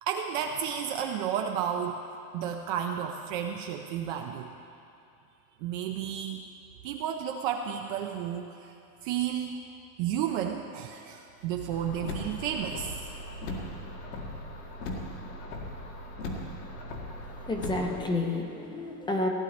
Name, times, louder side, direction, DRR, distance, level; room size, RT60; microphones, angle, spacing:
voice 1, 0.0-2.0 2.3-4.5 5.6-6.5 6.8-8.7 9.0-9.6 10.0-12.9, right 9 dB, 35° right, 3 dB, 0.4 m, -32 dB
Car, 11.7-18.0, left 1 dB, 85° left, 2.0 m, -38 dB
voice 2, 17.1-19.3, left 2 dB, 10° left, 2 dB, 0.6 m, -31 dB
16.5 x 9.2 x 4.1 m, 2.7 s
supercardioid pair, 145°, 48 cm